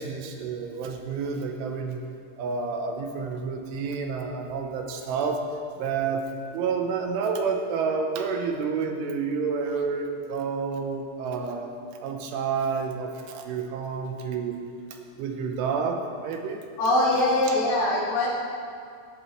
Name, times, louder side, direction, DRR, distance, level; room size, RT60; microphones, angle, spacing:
voice 1, 0.0-2.0 2.4-5.4 5.8-6.2 6.5-11.7 12.0-14.6 15.2-16.6 17.5-17.6, right 5 dB, 80° right, 3 dB, 3.2 m, -29 dB
voice 2, 16.8-18.3, left 1 dB, 55° left, -6 dB, 3.7 m, -22 dB
17.5 x 11.0 x 3.2 m, 2.3 s
omnidirectional pair, 5.7 m